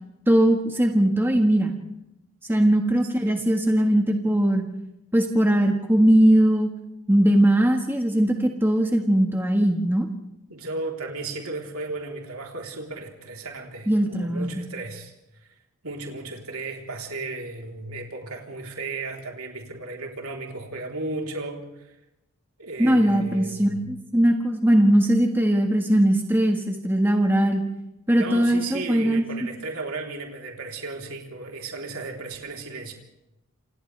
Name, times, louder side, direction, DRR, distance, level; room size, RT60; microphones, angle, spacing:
voice 1, 0.3-1.7 2.5-4.6 5.1-6.7 7.1-10.1 13.9-14.6 22.8-27.6 28.1-29.2, right 1 dB, 10° right, 3 dB, 1.6 m, -20 dB
voice 2, 10.5-15.1 15.8-22.0 22.6-23.9 28.1-32.9, right 3 dB, 80° right, 1 dB, 3.7 m, -35 dB
28.0 x 27.0 x 3.4 m, 0.90 s
head